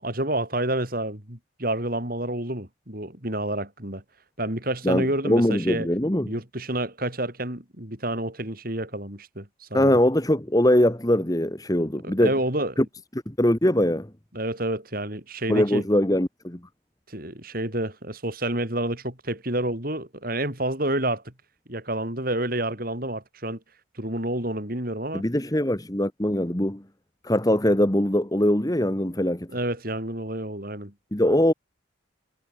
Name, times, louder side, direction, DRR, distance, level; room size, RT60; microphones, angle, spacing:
voice 1, 0.0-4.0 4.4-5.9 6.3-10.0 12.0-12.7 14.3-15.8 17.1-21.3 21.7-23.6 23.9-25.2 29.5-30.9, right 1 dB, 45° right, 5.0 m, -29 dB
voice 2, 4.8-6.3 9.7-12.3 12.8-12.9 13.3-14.1 15.5-16.6 25.1-26.8 27.2-29.5 31.1-31.5, left 1 dB, 20° left, 1.4 m, -22 dB
head